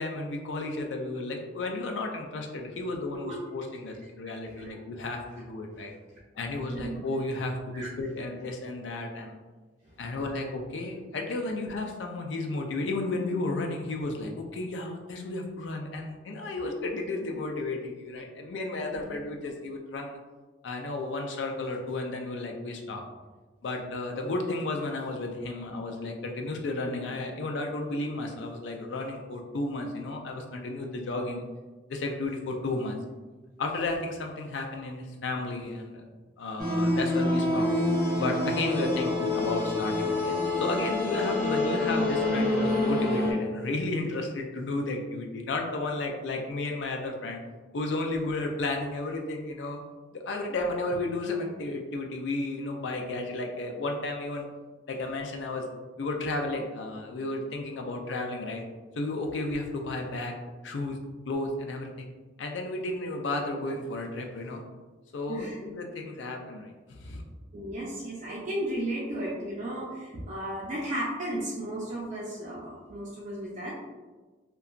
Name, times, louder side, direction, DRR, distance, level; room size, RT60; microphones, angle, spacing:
voice 1, 0.0-5.9 6.4-9.3 10.0-20.2 20.6-23.0 23.6-31.4 31.9-33.0 33.6-36.0 36.4-37.7 38.2-47.4 47.7-49.8 50.1-54.4 54.9-55.7 56.0-58.6 59.0-60.3 60.6-61.0 61.3-62.1 62.4-64.6 65.1-67.2, left 2 dB, 75° left, 3 dB, 0.4 m, -33 dB
voice 2, 6.7-7.0 7.7-7.9 18.9-19.2 38.8-39.0 65.3-65.6 67.5-73.7, right 1 dB, 45° right, -6 dB, 0.5 m, -34 dB
sound 1, 36.6-43.3, left 2 dB, 5° left, 0.9 m, -27 dB
2.8 x 2.2 x 2.4 m, 1.3 s
head